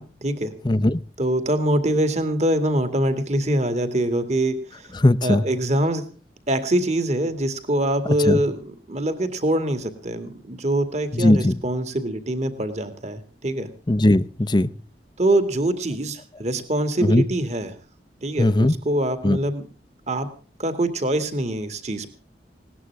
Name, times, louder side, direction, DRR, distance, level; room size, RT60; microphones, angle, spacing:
voice 1, 0.0-0.5 1.2-4.9 5.2-6.0 6.5-13.7 15.2-17.8 18.2-19.6 20.1-20.3 20.6-22.1, right 1 dB, 40° right, 9 dB, 2.3 m, -24 dB
voice 2, 0.6-1.0 5.0-5.4 8.3-8.4 11.1-11.6 13.9-14.7 17.0-17.2 18.4-18.7 19.2-19.4, left 1 dB, 25° left, 15 dB, 0.7 m, -18 dB
19.5 x 18.5 x 3.5 m, 0.37 s
head